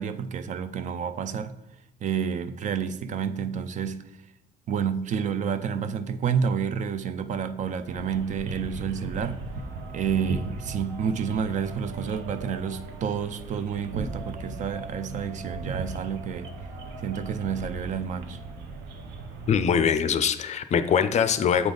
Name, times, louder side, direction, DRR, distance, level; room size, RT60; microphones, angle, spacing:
voice 1, 0.0-1.5 2.0-4.0 4.7-9.4 9.9-16.5 17.0-18.4, right 7 dB, 45° right, 0.4 m, -29 dB
sound 1, 7.9-19.6, right 3 dB, 85° right, 0.8 m, -37 dB
voice 2, 19.5-21.7, left 7 dB, 40° left, 0.4 m, -23 dB
7.9 x 3.5 x 3.8 m
cardioid pair, 110°, 17 cm